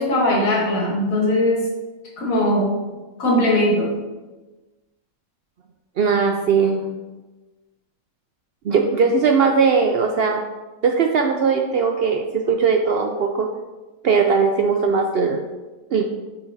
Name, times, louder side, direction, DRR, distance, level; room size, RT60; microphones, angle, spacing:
voice 1, 0.0-1.7 2.2-2.7 3.2-3.9, left 1 dB, 80° left, -3 dB, 1.8 m, -19 dB
voice 2, 6.0-6.8 8.6-10.4 10.8-13.5 14.0-15.4 15.9-16.1, right 5 dB, 65° right, 3 dB, 0.6 m, -19 dB
8.1 x 4.8 x 2.7 m, 1.2 s
omnidirectional pair, 1.4 m